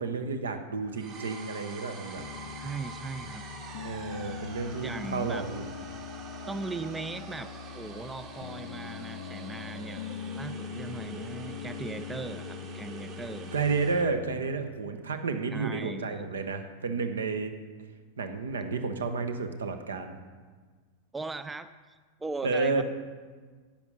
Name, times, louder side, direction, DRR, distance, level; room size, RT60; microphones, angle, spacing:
voice 1, 0.0-2.2 3.8-5.7 13.5-17.5 18.2-20.2 22.4-22.8, right 4 dB, 70° right, 8 dB, 1.0 m, -31 dB
sound 1, 0.9-14.1, right 4 dB, 35° right, 2.0 m, -45 dB
Piano, 2.2-14.7, left 8 dB, 55° left, 0.5 m, -42 dB
voice 2, 2.5-3.4 4.8-5.5 6.2-10.0 10.3-13.5 15.5-16.0 21.1-22.8, right 3 dB, 10° right, 12 dB, 0.3 m, -39 dB
10.5 x 8.9 x 5.7 m, 1.5 s
figure-of-eight pair, 90°, 0 cm